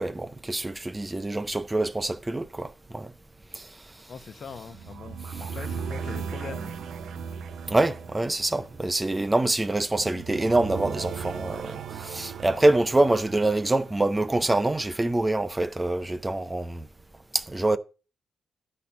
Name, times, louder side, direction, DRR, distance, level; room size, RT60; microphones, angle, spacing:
voice 1, 0.0-3.1 3.5-3.7 5.3-5.4 7.7-16.9 17.3-17.8, right 2 dB, 15° right, 0.4 m, -25 dB
voice 2, 4.1-5.2 5.5-6.7, left 6 dB, 50° left, 0.8 m, -41 dB
sound 1, 4.5-14.6, right 6 dB, 80° right, 0.6 m, -38 dB
11.5 x 4.2 x 5.8 m
wide cardioid pair, 135°, 0 cm